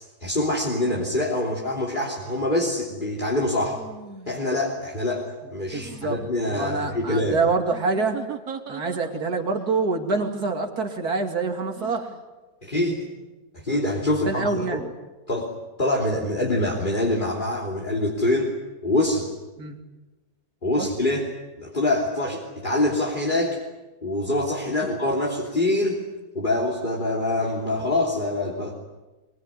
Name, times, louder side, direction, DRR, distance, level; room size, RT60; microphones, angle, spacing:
voice 1, 0.0-3.8 4.3-7.4 12.6-13.0 13.5-14.9 15.3-15.5 15.8-18.5 18.8-19.3 20.6-21.3 21.6-23.6 24.0-26.0 26.3-28.7, left 1 dB, 30° left, -3 dB, 3.5 m, -25 dB
sound 1, 2.2-2.4 3.7-4.6 5.7-6.3 7.7-9.4 10.1-10.6 11.7-12.2, right 6 dB, 65° right, 2.0 m, -40 dB
voice 2, 5.7-6.2 6.5-8.2 8.7-12.1 14.2-14.9 19.6-19.8 20.8-20.9, right 3 dB, 90° right, 3 dB, 3.0 m, -26 dB
23.5 x 23.0 x 10.0 m, 1.1 s
omnidirectional pair, 1.6 m